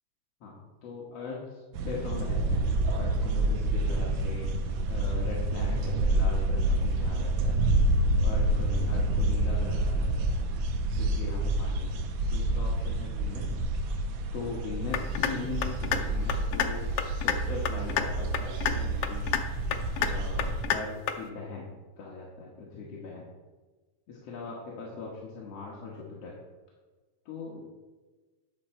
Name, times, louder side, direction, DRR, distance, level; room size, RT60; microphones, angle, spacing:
voice 1, 0.4-7.6 8.2-10.3 10.9-12.0 12.3-13.5 14.3-19.3 19.8-21.7 22.0-23.2 24.1-26.3 27.3-27.6, left 4 dB, 60° left, -4 dB, 2.2 m, -40 dB
sound 1, 1.7-20.6, right 1 dB, 80° right, 2.1 m, -28 dB
sound 2, 14.9-15.3 15.6-16.0 16.3-16.7 17.0-17.4 17.7-18.0 18.3-18.8 19.0-19.4 19.7-20.1 20.4-20.8 21.1-21.2, left 10 dB, 85° left, 1.3 m, -27 dB
10.5 x 6.1 x 4.4 m, 1.3 s
omnidirectional pair, 3.4 m